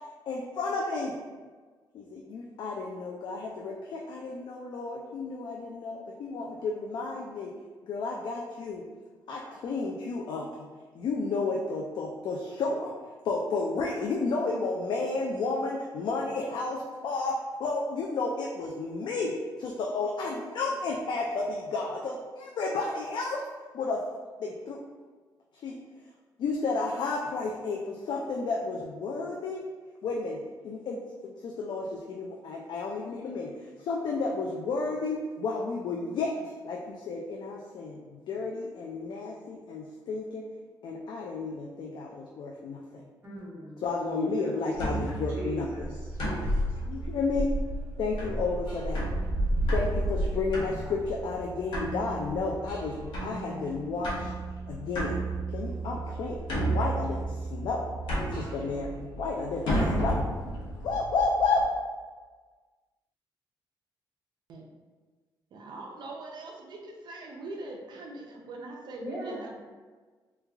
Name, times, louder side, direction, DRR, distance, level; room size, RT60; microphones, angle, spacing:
voice 1, 0.3-1.2 1.9-7.5 7.9-8.8 9.3-10.7 10.9-12.9 13.2-23.5 23.7-24.0 24.4-24.8 25.6-25.8 26.4-29.6 30.0-33.5 33.8-36.3 36.6-40.5 40.8-43.0 43.8-45.7 46.9-47.6 48.0-49.1 49.7-54.3 54.7-55.2 55.5-56.4 56.7-57.9 58.3-60.3 60.8-61.6, left 3 dB, 70° left, -1 dB, 0.4 m, -32 dB
voice 2, 43.2-43.8 44.1-44.3 45.3-45.9 46.2-46.7 69.0-69.5, right 1 dB, 25° right, -8 dB, 1.3 m, -38 dB
sound 1, 44.7-61.6, right 1 dB, 90° left, 0.9 m, -32 dB
voice 3, 65.5-69.5, right 2 dB, 65° right, 0 dB, 0.6 m, -42 dB
3.1 x 2.3 x 3.4 m, 1.4 s
cardioid pair, 120°, 8 cm